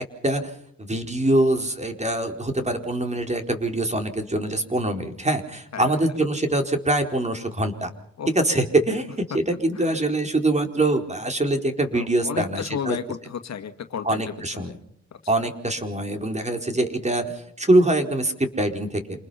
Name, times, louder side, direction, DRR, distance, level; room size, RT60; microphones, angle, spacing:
voice 1, 0.8-7.9 8.3-13.0 14.0-14.7 15.3-19.0, right 1 dB, 25° right, 5 dB, 4.4 m, -24 dB
voice 2, 8.2-8.7 9.8-9.9 11.9-14.8 15.1-15.5, left 7 dB, 65° left, 8 dB, 2.0 m, -34 dB
28.0 x 20.5 x 5.9 m, 0.71 s
supercardioid pair, 60°, 29 cm